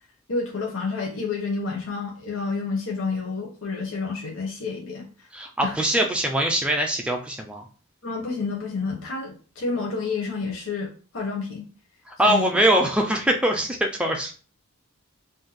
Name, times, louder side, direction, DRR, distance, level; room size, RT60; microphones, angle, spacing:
voice 1, 0.3-5.1 5.6-5.8 8.0-11.7 12.2-12.6, left 4 dB, 65° left, -1 dB, 0.8 m, -29 dB
voice 2, 5.3-7.7 12.1-14.3, right 1 dB, 5° right, 2 dB, 0.4 m, -22 dB
2.6 x 2.2 x 4.0 m, 0.38 s
head